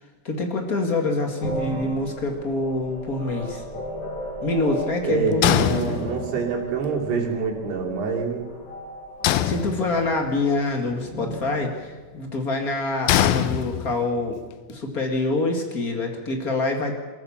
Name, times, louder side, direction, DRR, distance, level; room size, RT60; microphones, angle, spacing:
voice 1, 0.2-3.6 4.4-6.0 9.4-14.4 14.7-16.9, left 2 dB, 40° left, 3 dB, 1.3 m, -26 dB
sound 1, 1.4-12.8, equal, 20° left, 5.4 m, -36 dB
voice 2, 5.0-8.5, right 5 dB, 70° right, 0 dB, 5.1 m, -26 dB
sound 2, 5.4-6.5 9.2-10.3 13.1-14.2, left 13 dB, 85° left, 2.1 m, -23 dB
26.0 x 14.0 x 7.2 m, 1.3 s
omnidirectional pair, 5.1 m